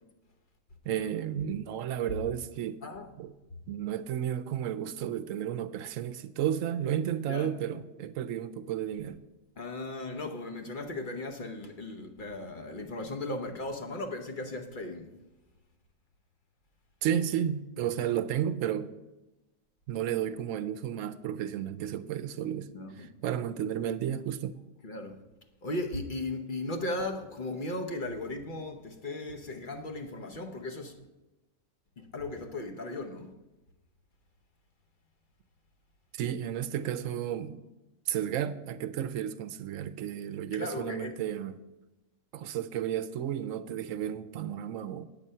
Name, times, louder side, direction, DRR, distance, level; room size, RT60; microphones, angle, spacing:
voice 1, 0.8-2.8 3.2-3.3 3.7-9.2 17.0-18.9 19.9-22.7 23.0-24.5 36.1-37.7 38.1-41.6 42.3-45.0, right 10 dB, 80° right, 1.0 m, -32 dB
voice 2, 2.8-3.1 7.3-7.6 9.6-15.1 22.7-23.1 24.8-25.2 25.6-31.0 32.0-33.3 40.5-41.1, left 2 dB, 45° left, 1.0 m, -37 dB
8.8 x 7.5 x 5.5 m
omnidirectional pair, 1.4 m